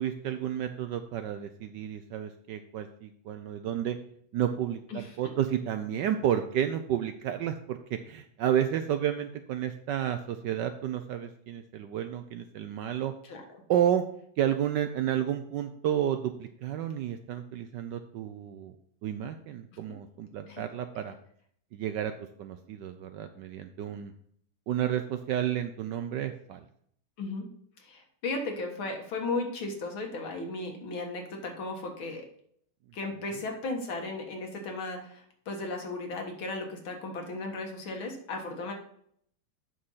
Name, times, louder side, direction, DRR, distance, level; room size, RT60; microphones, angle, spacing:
voice 1, 0.0-4.0 4.3-7.8 8.1-13.1 13.7-14.0 14.4-18.7 19.0-21.1 21.7-22.1 22.4-24.1 24.7-26.6, right 10 dB, 75° right, 8 dB, 1.0 m, -31 dB
voice 2, 4.9-5.3 13.3-13.4 20.5-20.6 27.2-27.5 27.8-32.2 32.9-38.7, left 2 dB, 70° left, 2 dB, 2.4 m, -35 dB
7.8 x 6.3 x 5.5 m, 0.66 s
omnidirectional pair, 2.3 m